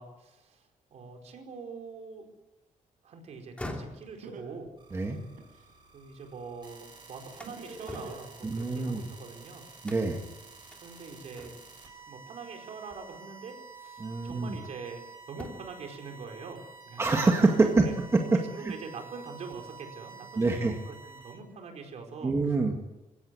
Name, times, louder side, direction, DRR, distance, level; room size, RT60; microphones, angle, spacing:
voice 1, 0.0-2.3 3.0-4.7 5.9-9.7 10.8-11.5 12.1-15.0 15.3-17.0 17.8-17.9 18.5-22.4, right 5 dB, 55° right, 3 dB, 4.7 m, -44 dB
sound 1, 3.4-6.5 6.9-9.3 9.8-10.3 10.7-10.8 11.4-11.9 13.1-13.3 13.8-15.0 15.3-15.9, left 1 dB, 10° left, 2.7 m, -46 dB
Laughter, 4.2-5.7 7.5-8.7, right 3 dB, 90° right, 5.4 m, -44 dB
sound 2, 4.8-21.4, right 5 dB, 35° right, 6.2 m, -50 dB
voice 2, 8.4-9.0 9.8-10.2 14.0-14.6 17.0-17.9 18.1-18.4 18.6-18.7 20.4-20.7 22.2-22.7, right 3 dB, 20° right, 2 dB, 1.9 m, -25 dB
22.5 x 17.0 x 9.6 m, 1.0 s
wide cardioid pair, 170°, 13 cm